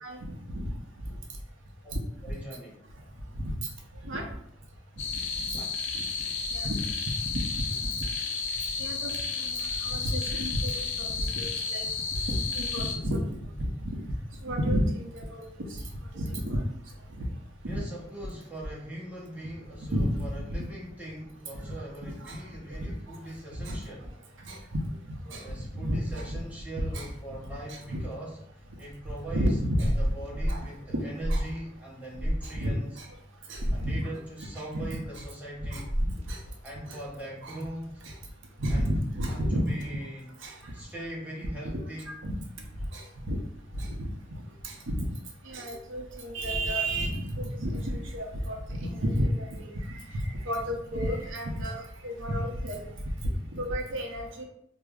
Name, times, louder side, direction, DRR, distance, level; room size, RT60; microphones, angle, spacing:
voice 1, 0.0-0.8 1.9-2.0 2.3-2.4 3.4-3.7 4.0-4.2 5.4-5.6 5.9-6.0 6.5-6.8 7.3-8.0 8.8-11.9 12.3-14.0 14.4-15.8 16.1-16.6 17.1-17.3 17.6-17.8 19.9-20.6 21.5-21.7 22.2-22.4 22.8-22.9 23.6-23.8 24.4-24.8 25.3-25.5 25.7-26.4 26.9-27.1 27.5-28.0 29.2-29.9 30.4-30.7 30.9-31.0 31.3-31.5 32.4-33.1 33.5-34.1 34.6-34.9 35.2-35.3 35.6-36.4 36.9-37.0 37.4-37.6 38.0-38.1 38.6-39.9 40.4-40.7 42.1-42.3 42.9-43.4 43.7-44.1 44.6-45.1 45.4-52.8 53.2-54.4, equal, 85° right, 1 dB, 0.6 m, -32 dB
voice 2, 2.2-2.9 5.0-5.2 5.6-5.7 17.6-24.1 25.4-28.4 28.8-29.5 29.8-33.0 33.7-35.9 36.6-38.0 38.7-38.9 39.3-40.3 40.7-42.2, right 1 dB, 10° right, -5 dB, 0.8 m, -41 dB
sound 1, 5.0-13.0, left 5 dB, 65° left, 0.6 m, -32 dB
sound 2, 29.8-30.6 31.2-31.6 32.2-32.5 33.6-33.9 35.9-36.3, equal, 35° right, 0.5 m, -28 dB
4.8 x 2.0 x 2.3 m, 0.72 s
head